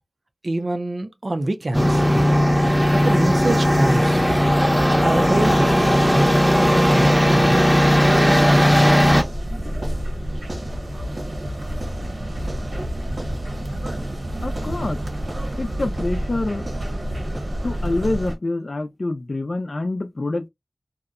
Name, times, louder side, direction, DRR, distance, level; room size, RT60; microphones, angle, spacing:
voice 1, 0.4-2.1 2.9-4.3 5.0-8.9, right 2 dB, 60° right, 0.5 m, -26 dB
sound 1, 1.7-9.2, equal, 5° right, 0.7 m, -17 dB
sound 2, 9.0-18.3, right 1 dB, 75° right, 1.0 m, -28 dB
voice 2, 14.4-15.0 15.6-16.7 17.6-20.5, left 2 dB, 65° left, 0.4 m, -26 dB
2.7 x 2.1 x 2.4 m
wide cardioid pair, 50°, 0 cm